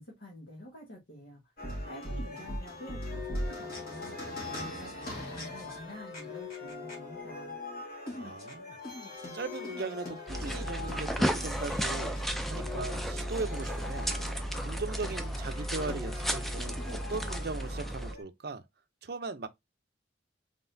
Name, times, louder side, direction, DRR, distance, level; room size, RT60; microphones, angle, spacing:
voice 1, 0.0-1.4 1.9-4.1 4.5-7.6, left 1 dB, 70° left, 1.5 m, -48 dB
sound 1, 1.6-18.2, left 2 dB, 50° left, 1.7 m, -41 dB
voice 2, 2.1-2.4 8.2-8.8 9.3-12.2 12.5-14.1 14.6-18.6 19.0-19.5, right 3 dB, 55° right, 0.5 m, -39 dB
sound 2, 10.3-18.1, equal, ahead, 0.4 m, -34 dB
4.0 x 3.6 x 2.6 m
head